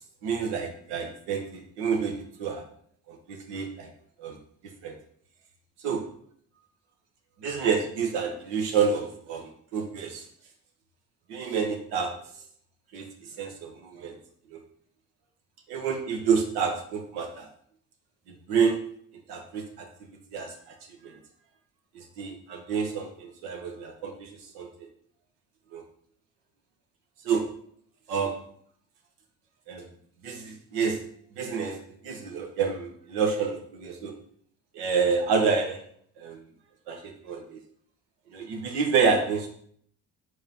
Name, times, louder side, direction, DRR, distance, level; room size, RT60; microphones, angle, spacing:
voice 1, 0.2-2.6 3.1-3.9 4.2-4.4 4.8-4.9 5.8-6.0 7.4-10.2 11.3-12.1 12.9-14.2 14.5-14.6 15.7-17.5 18.5-18.8 19.3-19.9 20.3-20.5 21.0-21.2 21.9-24.7 25.7-25.8 27.2-27.4 28.1-28.4 29.7-29.9 30.2-31.0 31.3-31.8 32.0-34.1 34.7-35.8 36.2-36.4 36.9-37.6 38.3-39.5, right 5 dB, 85° right, 3 dB, 1.0 m, -28 dB
4.8 x 3.9 x 2.8 m, 0.62 s
supercardioid pair, 65°, 39 cm